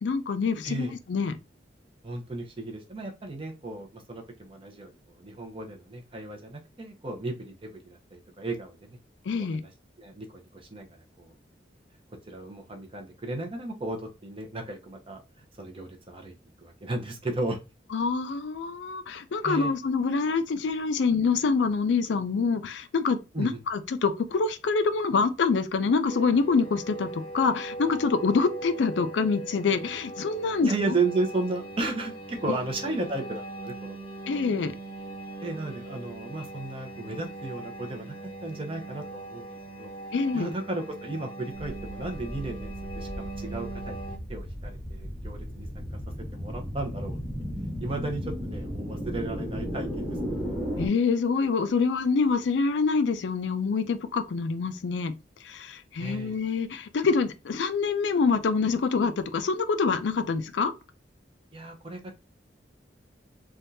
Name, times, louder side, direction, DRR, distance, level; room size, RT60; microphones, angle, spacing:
voice 1, 0.0-1.3 9.3-9.6 17.9-30.9 34.3-34.7 40.1-40.5 50.8-55.1 55.4-60.7, left 4 dB, 75° left, 0.4 m, -26 dB
voice 2, 0.6-1.0 2.0-9.0 9.5-9.7 10.0-10.9 11.2-11.3 12.3-15.2 15.6-16.3 16.6-17.6 19.4-19.7 23.3-23.6 30.6-34.1 35.4-38.1 38.4-39.9 40.3-45.9 46.3-47.2 47.8-50.5 56.0-56.4 61.5-62.0, right 2 dB, 30° right, 0.7 m, -34 dB
sound 1, 26.1-44.2, right 2 dB, 30° left, 0.6 m, -40 dB
sound 2, 41.6-50.9, equal, 5° right, 1.1 m, -35 dB
3.4 x 2.3 x 2.6 m
head